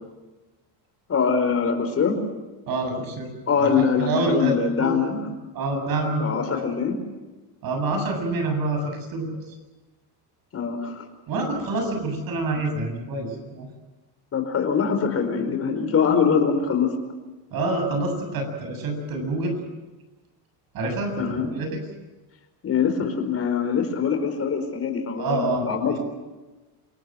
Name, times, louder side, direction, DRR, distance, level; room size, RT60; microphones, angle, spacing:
voice 1, 1.1-2.2 3.5-5.3 6.2-7.0 10.5-11.0 14.3-16.9 21.2-21.5 22.6-26.0, left 6 dB, 35° left, 6 dB, 4.8 m, -23 dB
voice 2, 2.7-3.3 3.6-3.7 4.0-5.1 5.5-6.6 7.6-8.8 9.1-9.3 11.3-13.7 17.5-19.5 20.7-21.7 25.2-25.9, right 2 dB, 50° right, 5 dB, 7.7 m, -27 dB
28.0 x 18.5 x 7.7 m, 1.2 s
cardioid pair, 130°, 44 cm